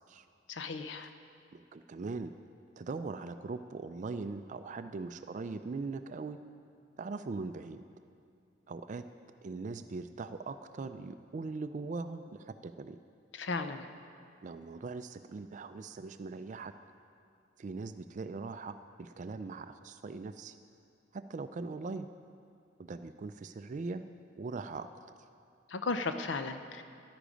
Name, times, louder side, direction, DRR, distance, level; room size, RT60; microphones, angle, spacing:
voice 1, 0.5-1.1 13.3-13.9 25.7-26.8, left 3 dB, 85° left, 8 dB, 0.6 m, -35 dB
voice 2, 1.5-2.3 2.8-6.4 7.0-7.8 8.7-9.0 9.4-13.0 14.4-16.7 17.6-20.6 21.1-22.1 22.8-24.0 24.4-24.9, right 3 dB, 45° right, 10 dB, 0.3 m, -40 dB
13.5 x 11.0 x 5.1 m, 2.4 s
head